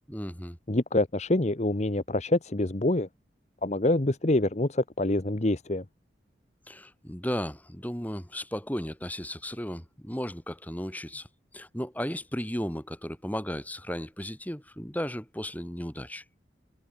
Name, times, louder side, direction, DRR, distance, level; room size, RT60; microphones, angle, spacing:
voice 1, 0.1-0.6 6.7-11.3 11.5-16.2, equal, 10° left, 5.1 m, -35 dB
voice 2, 0.7-3.1 3.6-5.8, left 2 dB, 40° left, 1.1 m, -26 dB
head